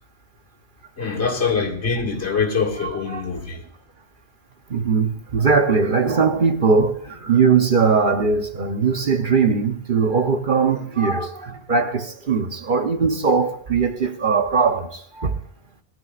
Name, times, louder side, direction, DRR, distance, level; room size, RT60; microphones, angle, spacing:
voice 1, 1.0-3.7, left 5 dB, 80° left, 2.5 m, -24 dB
voice 2, 2.8-3.4 4.7-15.4, right 5 dB, 50° right, 1.1 m, -20 dB
21.0 x 12.5 x 2.5 m
omnidirectional pair, 1.1 m